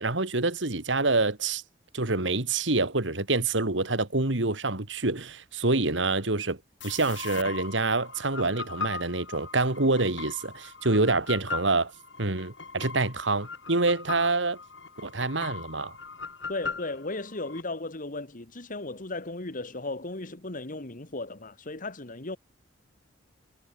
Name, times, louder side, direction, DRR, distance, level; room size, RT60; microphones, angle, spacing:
voice 1, 0.0-1.6 1.9-6.6 6.8-11.9 12.2-14.6 15.0-15.9, right 3 dB, 70° right, 2.4 m, -26 dB
sound 1, 6.8-17.6, left 4 dB, 70° left, 6.4 m, -39 dB
voice 2, 16.5-22.4, left 2 dB, 45° left, 2.0 m, -36 dB
head